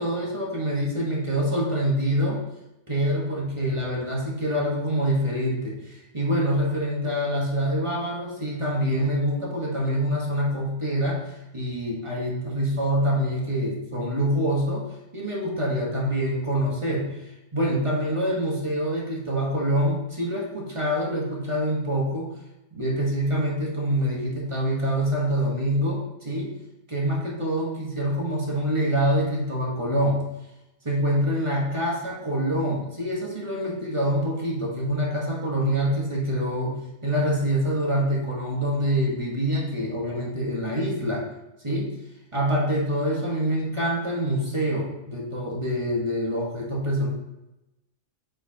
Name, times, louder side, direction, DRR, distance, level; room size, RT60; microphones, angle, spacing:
voice 1, 0.0-2.4 2.9-11.2 11.5-14.8 15.1-22.3 22.7-26.5 26.9-30.2 30.8-36.8 37.0-41.2 41.6-41.9 42.3-47.1, equal, 20° right, -3 dB, 1.3 m, -25 dB
7.8 x 4.8 x 2.9 m, 0.95 s
omnidirectional pair, 1.6 m